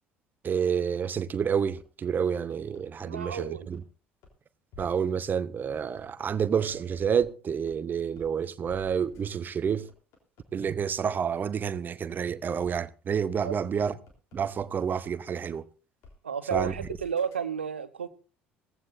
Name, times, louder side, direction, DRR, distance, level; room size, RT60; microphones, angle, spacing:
voice 1, 0.4-3.8 4.8-9.9 10.5-13.9 14.3-15.7 16.5-16.7, right 7 dB, 30° right, 0.8 m, -29 dB
sound 1, 1.8-3.3 3.7-3.8 4.2-4.3 4.7-4.8 5.2-5.3 5.7-7.2 7.7-7.8 8.2-8.3 8.7-11.1 11.6-11.7 12.1-12.2 12.6-12.7 13.1-13.2 13.6-15.1 15.5-15.6 16.0-16.1 16.5-17.4, left 2 dB, 55° left, 3.6 m, -50 dB
voice 2, 3.0-3.7 13.4-13.6 16.2-18.1, right 7 dB, 80° right, 0.9 m, -32 dB
17.5 x 15.0 x 2.6 m
figure-of-eight pair, 55°, 6 cm